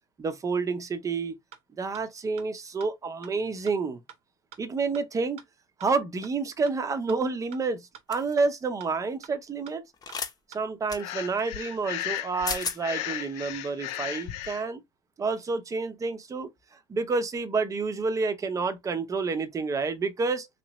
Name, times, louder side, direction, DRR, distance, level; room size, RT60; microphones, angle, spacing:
voice 1, 0.2-1.3 1.8-4.0 4.6-5.4 5.8-9.8 10.5-14.8 15.2-20.5, right 4 dB, 25° right, 0.8 m, -29 dB
sound 1, 1.5-1.6 1.9-2.0 2.4-2.5 2.8-2.9 3.2-3.3 3.7-3.8 4.1-4.2 4.5-4.6 4.9-5.0 5.4-5.5 5.8-5.9 6.2-6.3 6.7-6.8 7.1-7.2 7.5-7.6 7.9-8.0 8.4-8.5 8.8-8.9 9.2-9.3 9.7-9.8 10.1-10.2 10.5-10.6, right 9 dB, 55° right, 0.9 m, -46 dB
sound 2, 8.1-8.3 10.0-10.3 10.9-11.0 12.2-12.3 12.5-12.8, left 5 dB, 30° left, 0.9 m, -32 dB
Breathing, 11.0-14.6, left 13 dB, 65° left, 0.5 m, -35 dB
3.2 x 2.9 x 3.0 m
supercardioid pair, 90°, 13 cm